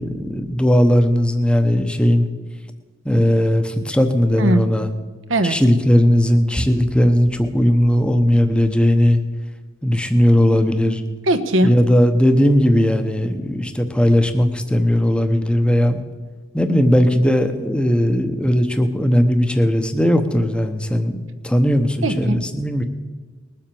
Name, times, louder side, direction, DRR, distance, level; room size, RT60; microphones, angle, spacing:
voice 1, 0.0-2.3 3.0-4.9 5.4-9.2 9.8-11.0 11.6-16.0 16.5-21.2 21.4-22.8, equal, 5° left, 7 dB, 0.9 m, -17 dB
voice 2, 11.3-11.7 22.0-22.4, right 1 dB, 75° right, 8 dB, 1.1 m, -18 dB
20.5 x 7.6 x 7.0 m, 1.5 s
head